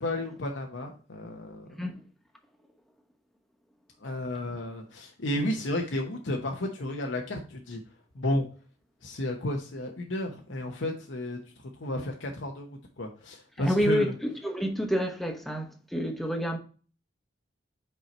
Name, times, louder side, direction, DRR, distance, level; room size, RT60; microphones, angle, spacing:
voice 1, 0.0-1.7 4.0-7.8 8.1-8.5 9.0-11.4 11.8-14.1, left 1 dB, 80° left, 0.9 m, -32 dB
voice 2, 13.6-16.6, equal, ahead, 1.0 m, -28 dB
5.5 x 4.5 x 4.2 m
head